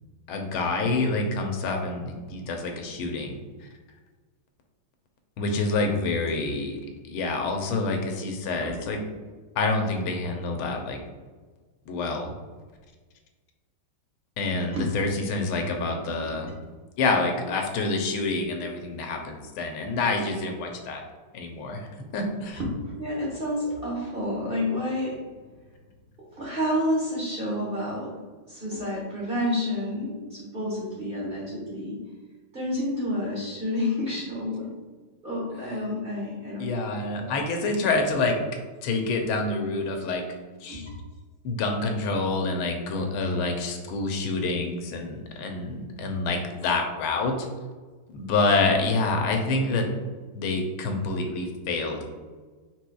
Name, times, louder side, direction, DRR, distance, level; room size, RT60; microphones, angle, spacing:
voice 1, 0.3-3.7 5.4-6.8 7.0-9.0 9.5-11.0 11.9-12.3 14.4-16.5 17.0-21.0 21.3-22.6 36.6-38.4 38.8-40.2 40.6-40.9 41.4-47.5 48.1-49.9 50.3-52.0, left 3 dB, 90° left, 3 dB, 1.6 m, -27 dB
voice 2, 22.8-25.2 26.4-28.1 28.5-32.0 32.5-34.7 35.2-36.6 37.1-37.4 40.7-40.8, left 1 dB, 35° right, -6 dB, 1.1 m, -29 dB
4.8 x 4.5 x 2.3 m, 1.4 s
omnidirectional pair, 2.3 m